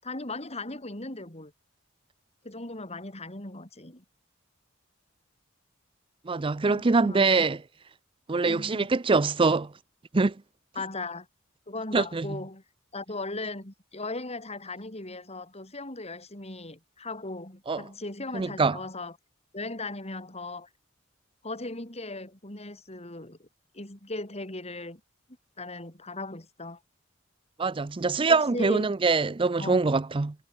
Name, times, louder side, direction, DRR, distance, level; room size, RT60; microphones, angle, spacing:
voice 1, 0.0-1.5 2.4-4.0 6.7-7.4 8.4-8.9 10.8-11.3 11.7-12.6 12.9-19.1 19.5-20.7 21.4-23.5 23.7-25.0 25.6-26.8 28.3-28.9 29.6-29.8, left 2 dB, 30° left, 5.6 m, -38 dB
voice 2, 6.3-7.6 8.3-9.7 10.1-10.3 11.9-12.3 17.7-17.8 18.3-18.8 27.6-30.3, right 4 dB, 25° right, 0.5 m, -24 dB
head